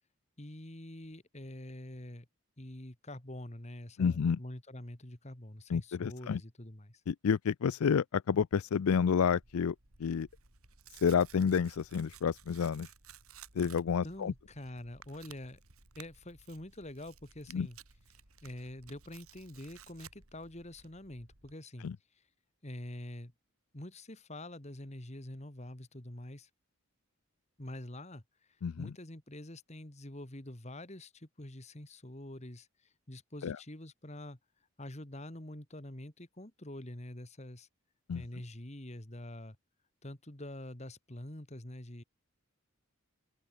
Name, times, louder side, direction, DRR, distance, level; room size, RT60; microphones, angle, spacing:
voice 1, 0.4-2.3 2.6-7.0 13.6-15.6 16.0-17.8 18.4-21.9 22.6-23.3 23.7-26.5 27.6-28.2 28.8-34.4 34.8-37.7 38.1-39.6 40.0-42.0, left 1 dB, 30° left, 2.0 m, -46 dB
voice 2, 4.0-4.4 5.7-6.4 7.1-9.7 10.0-10.3 11.0-12.9 13.6-14.3 17.5-17.7 21.8-21.9 28.6-28.9 33.4-33.6 38.1-38.2, left 6 dB, 80° left, 0.4 m, -29 dB
Tearing, 9.2-21.5, right 7 dB, 80° right, 3.9 m, -57 dB
open air
head